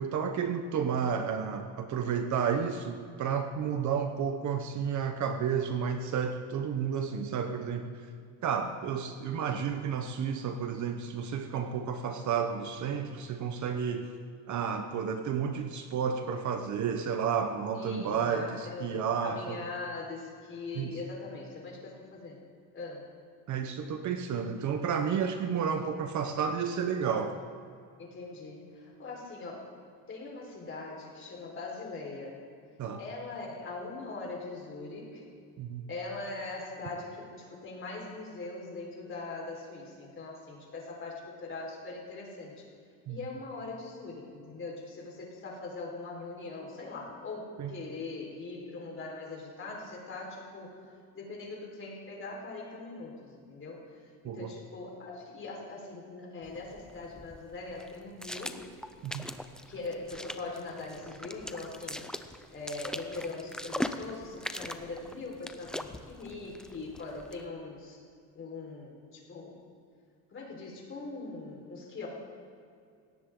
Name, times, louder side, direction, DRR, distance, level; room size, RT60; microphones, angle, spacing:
voice 1, 0.0-7.9 8.4-14.1 14.5-19.6 20.7-20.9 23.5-27.4 32.8-33.0 35.6-35.9 43.1-43.2 47.6-47.7 54.2-54.5 59.0-59.2, right 7 dB, 50° right, 6 dB, 1.1 m, -31 dB
voice 2, 17.7-22.4 22.7-23.0 28.0-29.7 30.1-32.4 33.0-35.2 35.9-42.6 43.1-50.7 51.1-53.8 54.2-58.6 59.7-62.0 62.5-68.0 68.3-69.6 70.3-72.1, left 3 dB, 30° left, -1 dB, 4.6 m, -41 dB
sound 1, 56.4-67.5, left 1 dB, ahead, 0.6 m, -41 dB
20.5 x 17.0 x 3.9 m, 2.4 s
cardioid pair, 130°, 38 cm